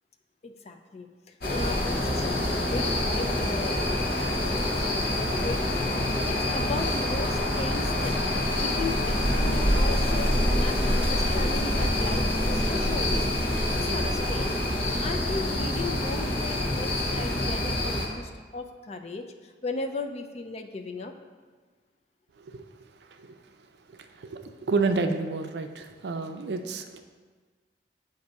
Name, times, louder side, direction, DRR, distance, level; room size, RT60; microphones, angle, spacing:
voice 1, 0.4-1.1 1.5-4.1 5.3-6.0 6.3-13.2 13.7-14.6 15.0-19.2 19.6-21.1, left 3 dB, 35° left, 5 dB, 0.4 m, -36 dB
sound 1, 1.4-18.1, left 1 dB, 60° left, 1.0 m, -26 dB
voice 2, 22.4-22.7 23.0-23.4 23.9-27.0, right 3 dB, 65° right, 7 dB, 0.4 m, -30 dB
7.9 x 2.6 x 5.2 m, 1.4 s
head